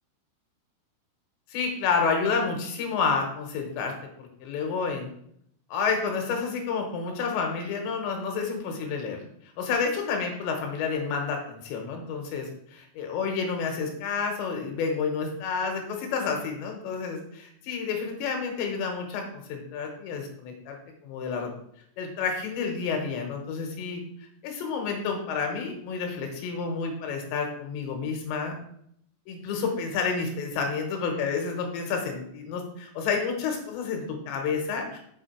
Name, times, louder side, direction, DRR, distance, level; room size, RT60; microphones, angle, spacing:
voice 1, 1.5-3.9 4.2-5.1 5.7-9.2 9.6-20.8 21.0-21.5 22.0-24.0 24.4-28.5 29.3-35.0, left 5 dB, 75° left, 3 dB, 3.5 m, -30 dB
7.3 x 6.1 x 4.5 m, 0.70 s
omnidirectional pair, 5.3 m